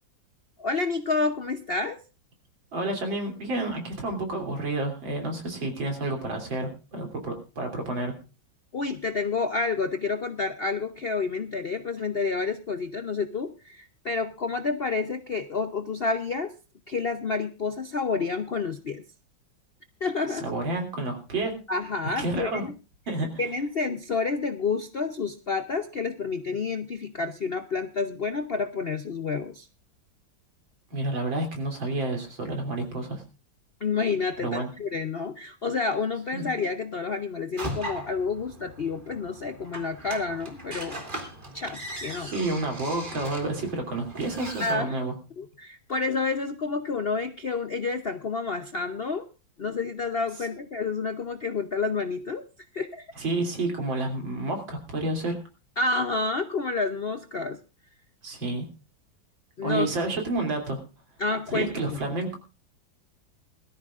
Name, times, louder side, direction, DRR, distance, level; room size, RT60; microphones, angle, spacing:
voice 1, 0.6-2.0 8.7-16.5 16.9-19.0 20.0-20.5 21.7-22.7 23.4-29.7 33.8-41.0 41.5-42.3 44.6-45.0 45.4-49.3 49.6-52.4 52.7-53.1 55.8-57.6 59.6-59.9 61.2-62.0, left 4 dB, 60° left, 8 dB, 0.6 m, -29 dB
voice 2, 2.7-8.1 20.3-21.5 22.2-22.6 23.1-23.4 30.9-33.2 34.4-34.7 36.3-36.5 42.2-45.1 53.2-55.4 58.2-58.7 59.6-60.8 61.5-62.3, right 2 dB, 85° right, 3 dB, 3.9 m, -30 dB
sound 1, 37.6-44.7, right 1 dB, 25° right, 2.8 m, -39 dB
21.5 x 13.5 x 2.5 m, 0.31 s
omnidirectional pair, 2.1 m